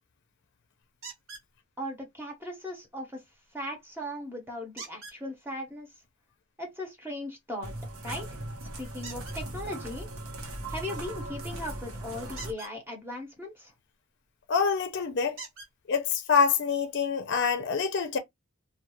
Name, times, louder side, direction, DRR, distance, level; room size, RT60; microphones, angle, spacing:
sound 1, 1.0-1.5 4.8-5.2 9.0-9.4 12.3-12.7 14.4-14.5 15.4-15.7 16.7-16.8 17.3-17.4, right 4 dB, 70° right, 1.2 m, -43 dB
voice 1, 1.8-3.2 3.5-5.9 6.6-7.7 8.0-8.4 8.8-10.1 10.7-13.7, left 1 dB, 10° right, 0.7 m, -38 dB
sound 2, 7.6-12.5, right 1 dB, 85° right, 0.9 m, -38 dB
voice 2, 14.5-15.4 15.9-18.2, left 6 dB, 55° left, 0.5 m, -26 dB
2.3 x 2.3 x 3.0 m
head